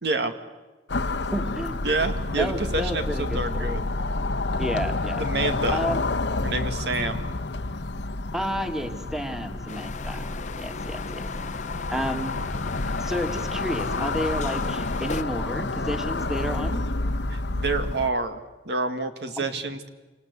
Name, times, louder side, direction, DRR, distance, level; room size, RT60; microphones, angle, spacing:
voice 1, 0.0-0.3 1.8-3.9 5.2-5.8 6.4-7.3 17.3-19.9, right 3 dB, 65° right, 8 dB, 2.0 m, -28 dB
sound 1, 0.9-18.1, left 2 dB, 80° left, 1.1 m, -29 dB
voice 2, 1.3-1.8 2.4-3.8 4.6-5.2 5.7-6.0 8.3-11.3 11.9-12.4 12.8-16.8 19.4-19.5, equal, 5° right, 6 dB, 2.1 m, -31 dB
sound 2, 9.7-15.2, left 4 dB, 40° left, 0.8 m, -38 dB
28.0 x 26.0 x 8.3 m, 1.2 s
head